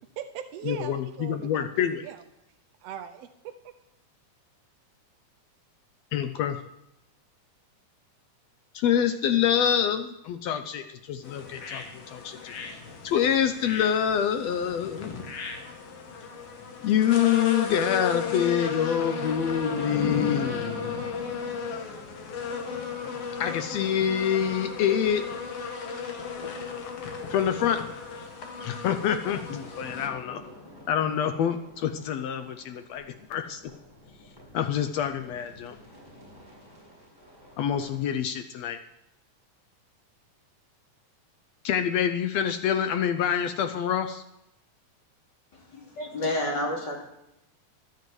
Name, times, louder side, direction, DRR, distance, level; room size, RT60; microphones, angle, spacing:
voice 1, 0.2-1.7 2.0-2.2 2.8-3.5, right 10 dB, 80° right, 8 dB, 1.4 m, -39 dB
voice 2, 0.7-2.0 6.1-6.6 8.7-12.8 13.0-15.3 16.8-21.0 23.4-25.3 27.3-27.8 28.6-30.4 30.9-33.0 33.3-33.6 34.5-35.8 37.6-38.8 41.6-44.2, left 9 dB, 75° left, 8 dB, 1.6 m, -26 dB
sound 1, 11.2-30.1, left 5 dB, 55° left, 2.3 m, -35 dB
sound 2, 18.8-25.6 25.9-26.0 26.2-26.4 26.6-38.0, left 2 dB, 15° left, 5.7 m, -43 dB
voice 3, 45.5-47.0, left 1 dB, 35° left, -1 dB, 3.3 m, -30 dB
12.0 x 9.4 x 7.8 m, 0.86 s
omnidirectional pair, 3.6 m